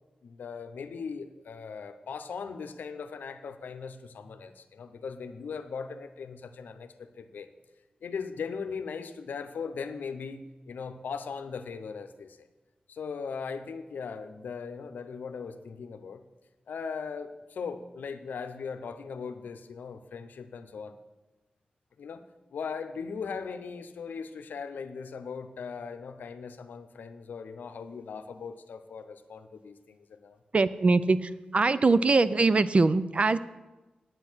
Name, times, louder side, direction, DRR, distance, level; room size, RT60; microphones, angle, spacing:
voice 1, 0.2-7.5 8.0-12.5 12.9-16.2 16.7-21.0 22.0-22.2 22.5-30.4, left 5 dB, 90° left, 9 dB, 0.7 m, -39 dB
voice 2, 30.5-33.4, right 3 dB, 45° right, 15 dB, 0.5 m, -23 dB
9.0 x 8.6 x 6.2 m, 1.1 s
cardioid pair, 65°, 3 cm